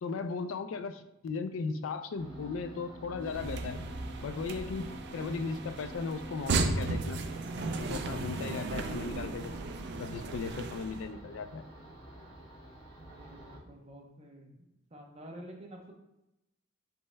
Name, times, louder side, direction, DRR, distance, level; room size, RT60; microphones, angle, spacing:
voice 1, 0.0-3.9 4.2-7.2 7.8-9.7 10.0-11.7, left 4 dB, 80° left, 9 dB, 0.4 m, -37 dB
sound 1, 2.1-13.6, right 1 dB, 35° left, 1.6 m, -49 dB
sound 2, 3.2-11.1, right 3 dB, 55° right, 0.4 m, -35 dB
voice 2, 13.0-14.5 14.9-15.9, right 1 dB, 30° right, 0 dB, 0.7 m, -49 dB
5.2 x 4.2 x 2.2 m, 0.89 s
head